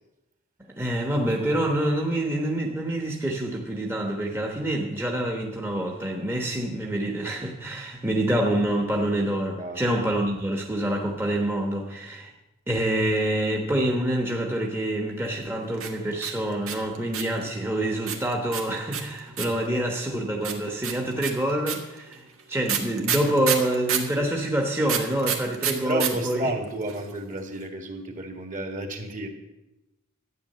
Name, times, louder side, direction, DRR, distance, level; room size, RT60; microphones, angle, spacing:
voice 1, 0.8-12.3 12.7-26.5, right 1 dB, 10° right, 0 dB, 1.1 m, -26 dB
sound 1, 15.7-17.4 18.1-19.7 20.4-24.1 24.9-26.1 26.4-26.5 26.6-27.1, right 9 dB, 80° right, 1.7 m, -28 dB
voice 2, 25.8-29.3, right 1 dB, 40° right, 4 dB, 1.8 m, -32 dB
12.5 x 9.2 x 6.7 m, 1.0 s
head